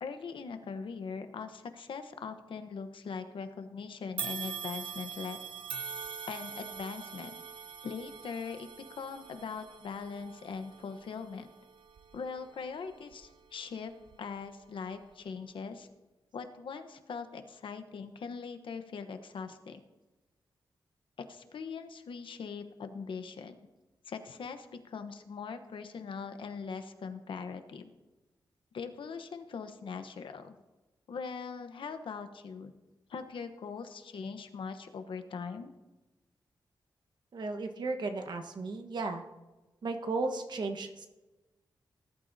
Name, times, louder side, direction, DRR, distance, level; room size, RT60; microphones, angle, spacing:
voice 1, 0.0-5.4 6.3-7.3 7.8-11.5 12.1-13.9 14.2-15.9 16.3-19.8 21.2-23.6 24.1-27.9 28.7-30.5 31.1-32.7 33.1-35.7, left 5 dB, 80° left, 8 dB, 1.0 m, -41 dB
sound 1, 4.2-13.5 14.0-14.2 15.1-15.2, right 6 dB, 85° right, 0.7 m, -43 dB
voice 2, 37.3-39.2 39.8-41.1, right 3 dB, 60° right, 5 dB, 1.3 m, -35 dB
19.5 x 12.0 x 2.8 m, 1.1 s
wide cardioid pair, 155°, 9 cm